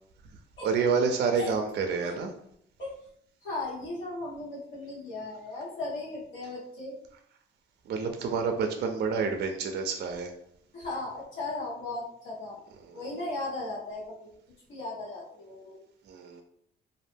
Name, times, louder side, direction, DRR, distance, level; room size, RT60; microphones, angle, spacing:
voice 1, 0.6-2.3 7.9-10.3 12.9-13.0 16.1-16.4, right 5 dB, 60° right, 5 dB, 0.4 m, -28 dB
voice 2, 3.4-7.0 10.7-12.6 12.9-14.3 14.7-15.8, left 2 dB, 75° left, -6 dB, 1.3 m, -37 dB
2.5 x 2.0 x 3.3 m, 0.70 s
cardioid pair, 90°, 20 cm